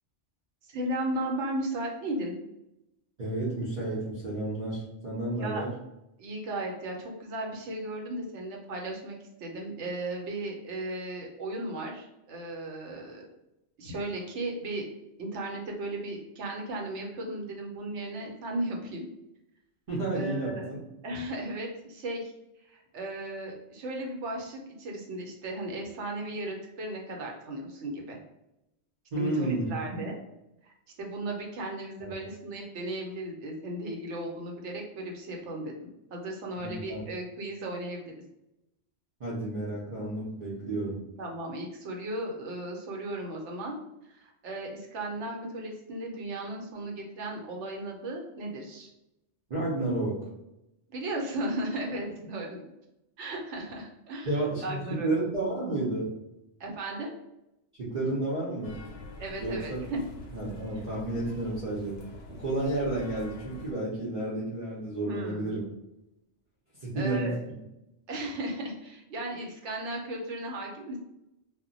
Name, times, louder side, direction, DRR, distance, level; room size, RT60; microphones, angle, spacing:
voice 1, 0.7-2.3 5.4-5.6 6.2-13.2 13.8-14.9 15.2-19.0 20.1-20.7 21.0-22.3 22.6-28.2 29.2-30.2 30.6-30.7 31.0-35.8 36.1-38.1 40.6-40.7 41.2-43.8 44.1-48.9 50.9-52.6 53.2-54.3 54.6-55.1 56.6-57.1 59.2-60.0 65.0-65.6 66.9-67.4 68.1-71.0, right 1 dB, 80° right, 0 dB, 0.9 m, -36 dB
voice 2, 3.2-5.7 19.9-20.8 29.1-29.7 32.0-32.1 36.6-37.0 39.2-41.0 49.5-50.2 54.2-56.1 57.8-58.7 59.4-59.8 60.3-62.0 62.4-65.6 66.8-67.3, right 2 dB, 45° right, -8 dB, 0.7 m, -31 dB
sound 1, 58.6-63.7, left 2 dB, 80° left, 0.9 m, -45 dB
2.1 x 2.1 x 3.8 m, 0.89 s
omnidirectional pair, 1.2 m